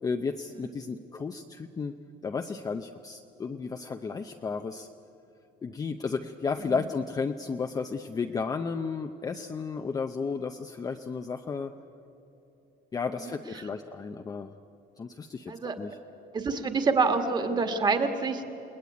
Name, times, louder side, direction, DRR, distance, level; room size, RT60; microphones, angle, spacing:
voice 1, 0.0-2.0 2.2-4.9 5.6-11.7 12.9-14.5 15.0-16.0, left 5 dB, 20° left, 5 dB, 0.6 m, -33 dB
voice 2, 16.3-18.5, right 4 dB, 25° right, 6 dB, 1.8 m, -27 dB
29.0 x 20.0 x 9.4 m, 2.8 s
cardioid pair, 175°, 17 cm